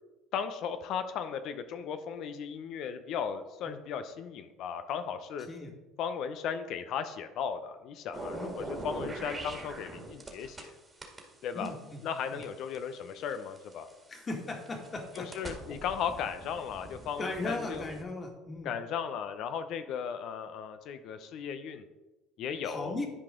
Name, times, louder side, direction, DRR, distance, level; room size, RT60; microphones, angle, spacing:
voice 1, 0.3-5.5 6.0-10.8 11.4-11.7 12.0-13.9 15.2-17.8 18.6-21.8 22.4-23.0, left 7 dB, 60° left, 9 dB, 0.7 m, -36 dB
sound 1, 8.1-10.7 11.0-13.9 14.5-18.0, right 2 dB, 20° right, 1.9 m, -43 dB
voice 2, 11.5-12.0 12.3-12.4 14.1-15.3 17.2-18.7 22.6-23.1, left 2 dB, 30° left, 2 dB, 1.9 m, -37 dB
11.0 x 4.8 x 3.8 m, 1.1 s
supercardioid pair, 85°, 0 cm